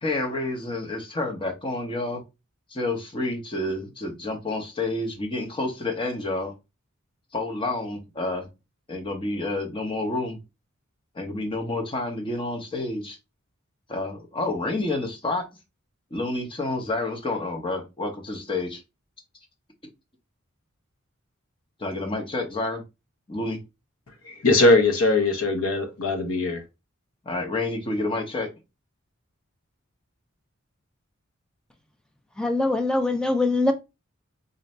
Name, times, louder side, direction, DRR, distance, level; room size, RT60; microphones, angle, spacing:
voice 1, 0.0-2.2 2.7-6.5 7.3-8.4 8.9-10.4 11.1-13.2 13.9-15.5 16.1-18.8 21.8-22.8 23.3-23.6 27.2-28.5, left 2 dB, 25° left, 0.9 m, -29 dB
voice 2, 24.3-26.6, left 2 dB, 85° left, 1.0 m, -20 dB
voice 3, 32.4-33.7, left 2 dB, 5° left, 0.5 m, -22 dB
4.0 x 2.6 x 3.2 m
head